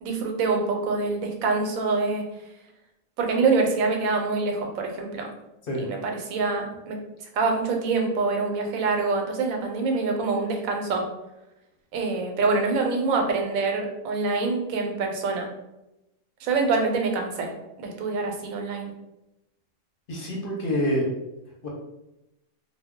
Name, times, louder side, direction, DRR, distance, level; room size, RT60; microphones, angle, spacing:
voice 1, 0.0-2.2 3.2-5.3 5.7-7.0 7.3-11.0 11.9-15.5 16.4-17.5 17.8-18.9, right 3 dB, 90° right, 2 dB, 1.0 m, -25 dB
voice 2, 20.1-21.1 21.6-21.7, equal, 55° left, -2 dB, 0.7 m, -26 dB
2.3 x 2.1 x 3.5 m, 0.92 s
omnidirectional pair, 1.4 m